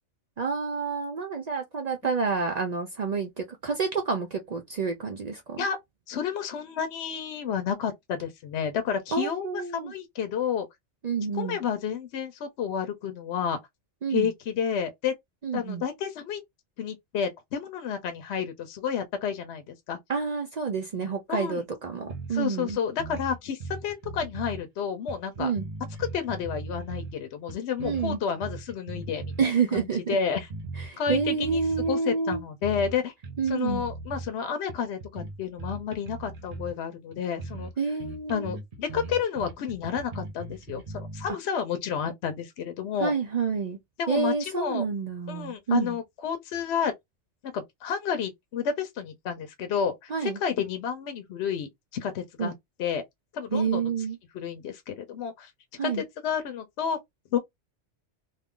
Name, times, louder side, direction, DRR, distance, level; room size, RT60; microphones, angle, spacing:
voice 1, 0.4-5.6 9.1-9.9 11.0-11.6 14.0-14.3 15.4-15.8 20.1-22.8 25.4-25.7 27.8-28.2 29.4-30.2 30.8-32.4 33.4-33.8 37.8-38.5 43.0-43.8 44.1-46.0 50.1-50.4 52.4-52.5 53.5-54.2 55.8-56.0, right 5 dB, 60° right, 0.4 m, -28 dB
voice 2, 6.1-10.7 11.3-13.6 14.1-15.1 15.5-16.4 16.8-20.0 21.0-21.6 22.3-25.5 26.0-30.5 31.0-31.6 31.9-33.1 33.5-37.7 38.3-43.1 44.0-44.9 45.3-46.9 47.4-52.5 52.8-53.0 53.3-53.9 54.3-55.5 55.8-57.0 57.3-57.4, left 7 dB, 70° left, 0.8 m, -30 dB
sound 1, 22.1-22.4 22.7-22.8 23.0-24.6 25.1-27.2 27.5-29.4 29.8-29.9 30.3-32.0 32.3-33.0 33.2-34.3 34.7-36.8 37.1-37.2 37.4-37.7 38.0-41.3, right 3 dB, 35° right, 0.8 m, -38 dB
2.5 x 2.3 x 3.6 m
omnidirectional pair, 1.2 m